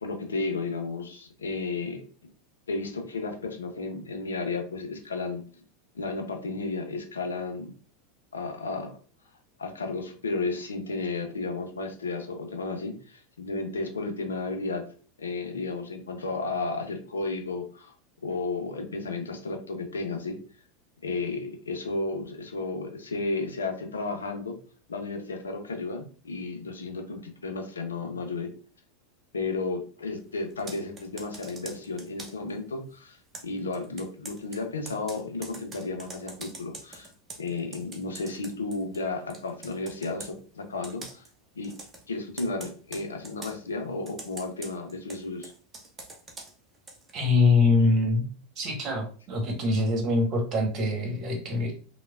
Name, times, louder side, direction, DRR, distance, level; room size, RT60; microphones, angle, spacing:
voice 1, 0.0-2.0 2.7-5.4 6.0-7.7 8.3-9.0 9.6-14.8 15.2-17.9 18.2-20.4 21.0-24.6 24.9-28.5 29.3-37.1 37.4-41.2 41.6-41.8 42.1-45.5, left 3 dB, 85° left, 4 dB, 0.5 m, -33 dB
Computer keyboard, 30.5-32.5 33.3-39.1 39.3-40.4 40.8-41.3 41.6-42.0 42.4-43.6 44.1-47.2, right 2 dB, 25° right, 0.7 m, -44 dB
voice 2, 47.1-48.2 48.6-51.7, left 3 dB, 45° right, 1 dB, 1.0 m, -24 dB
3.1 x 2.1 x 2.3 m, 0.41 s
hypercardioid pair, 90°, 0 cm